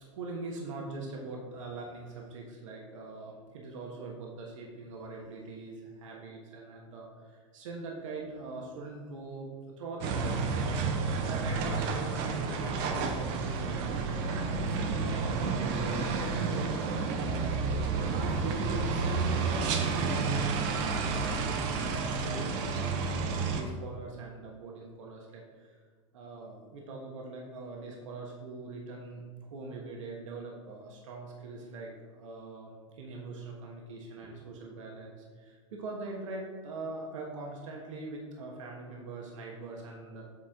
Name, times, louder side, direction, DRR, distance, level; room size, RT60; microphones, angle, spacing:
voice 1, 0.0-9.5 9.8-15.3 15.8-17.6 17.9-22.9 23.2-25.8 26.1-29.2 29.5-40.2, right 3 dB, 80° right, -1 dB, 1.3 m, -43 dB
sound 1, 10.0-23.6, right 4 dB, 55° right, 0.9 m, -30 dB
8.3 x 4.2 x 3.6 m, 1.5 s
supercardioid pair, 120°, 16 cm